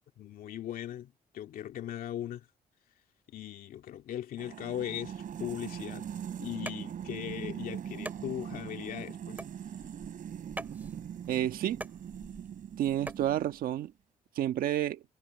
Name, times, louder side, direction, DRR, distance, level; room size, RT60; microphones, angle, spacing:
voice 1, 0.2-2.5 3.3-6.1 6.4-9.4, left 11 dB, 80° left, 2.3 m, -39 dB
sound 1, 4.4-13.7, right 9 dB, 65° right, 4.4 m, -41 dB
sound 2, 6.7-13.3, right 1 dB, 10° right, 3.1 m, -46 dB
voice 2, 11.3-11.8 12.8-13.9 14.3-15.0, right 12 dB, 80° right, 1.4 m, -30 dB
cardioid pair, 75°, 15 cm